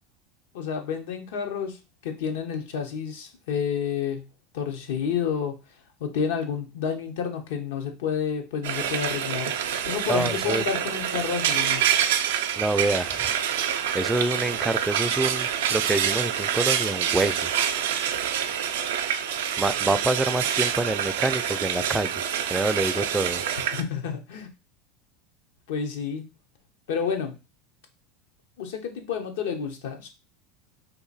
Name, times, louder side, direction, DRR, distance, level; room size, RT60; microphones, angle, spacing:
voice 1, 0.5-4.3 4.5-5.6 6.0-9.5 9.9-11.9 23.5-24.5 25.7-26.2 26.9-27.4 28.6-30.1, left 7 dB, 75° left, 4 dB, 0.8 m, -30 dB
Frying (food), 8.6-23.8, right 9 dB, 80° right, 0.4 m, -26 dB
voice 2, 10.1-10.6 12.6-13.2 13.9-17.5 19.6-22.2 22.5-23.4, right 2 dB, 10° right, 10 dB, 0.3 m, -26 dB
2.8 x 2.6 x 3.9 m, 0.28 s
supercardioid pair, 110°, 0 cm